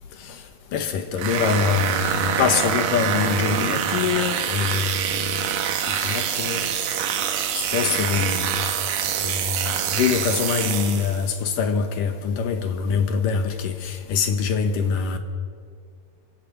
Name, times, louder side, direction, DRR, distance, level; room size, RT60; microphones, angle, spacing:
voice 1, 0.7-5.1 6.0-6.6 7.5-8.6 9.2-15.2, left 6 dB, 65° left, 7 dB, 2.2 m, -24 dB
sound 1, 1.2-11.3, right 8 dB, 60° right, 2.5 m, -25 dB
26.5 x 17.0 x 7.4 m, 2.1 s
omnidirectional pair, 5.3 m